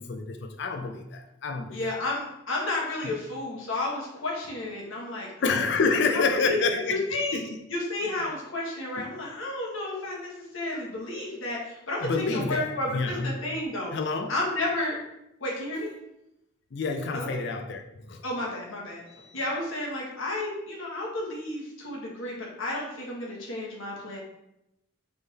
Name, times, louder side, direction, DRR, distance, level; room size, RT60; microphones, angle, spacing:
voice 1, 0.0-1.8 5.4-7.0 7.3-7.6 12.0-13.3 13.9-14.3 16.7-17.8 18.1-18.2, left 4 dB, 55° left, 5 dB, 0.4 m, -28 dB
voice 2, 1.7-6.6 6.9-7.4 7.7-13.9 14.3-15.0 15.4-15.9 17.1-17.3 18.2-24.2, left 2 dB, 75° left, -3 dB, 1.2 m, -32 dB
3.6 x 3.4 x 4.0 m, 0.85 s
head